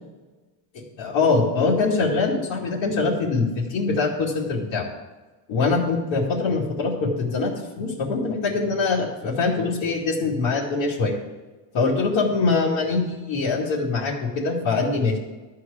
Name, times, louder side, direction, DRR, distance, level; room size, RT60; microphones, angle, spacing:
voice 1, 1.0-4.9 5.5-11.1 11.7-15.2, left 4 dB, 75° left, -4 dB, 2.5 m, -23 dB
12.0 x 4.8 x 8.5 m, 1.2 s
cardioid pair, 135°, 46 cm